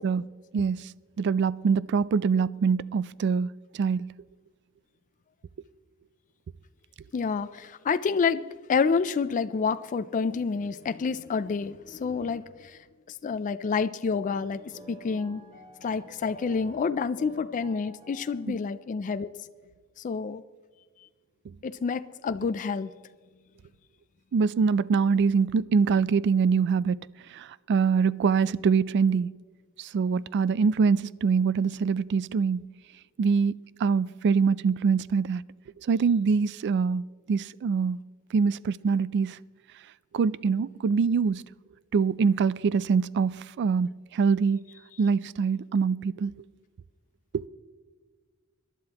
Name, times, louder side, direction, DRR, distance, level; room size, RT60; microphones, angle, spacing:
voice 1, 0.5-0.9 1.2-3.5 3.7-4.1 18.5-18.6 24.3-27.0 27.3-29.3 29.8-32.7 33.2-35.4 35.9-38.0 38.3-39.4 40.1-41.4 41.9-44.6 45.0-46.3, right 5 dB, 55° right, 0.3 m, -24 dB
voice 2, 7.1-8.4 8.7-12.8 13.1-14.6 14.9-15.4 15.8-19.3 20.0-20.4 21.6-22.9, left 5 dB, 35° left, 0.3 m, -28 dB
sound 1, 14.3-18.9, right 1 dB, 30° right, 2.6 m, -49 dB
25.5 x 11.5 x 2.9 m
head